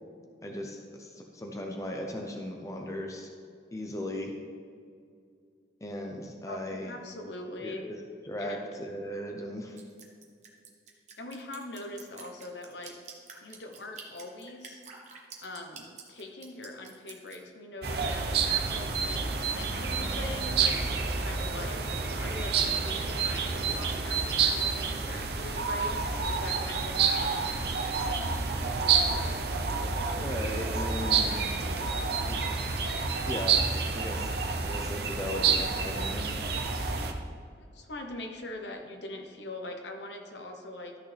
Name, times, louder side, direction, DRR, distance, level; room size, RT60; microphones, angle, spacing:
voice 1, 0.4-3.3 3.7-4.4 5.8-7.0 7.6-8.0 8.2-9.8 30.1-31.3 32.2-32.4 33.2-33.6 33.9-34.3 34.6-36.2, left 1 dB, 15° left, 1 dB, 0.7 m, -37 dB
voice 2, 6.5-7.9 8.4-8.7 11.2-13.0 13.4-14.8 15.4-21.8 22.2-27.5 37.6-41.0, left 2 dB, 75° left, 4 dB, 1.0 m, -42 dB
Drip, 9.8-17.4, right 5 dB, 40° right, 1.1 m, -48 dB
sound 1, 17.8-37.1, right 5 dB, 60° right, 0.8 m, -29 dB
13.0 x 6.2 x 3.4 m, 2.3 s
head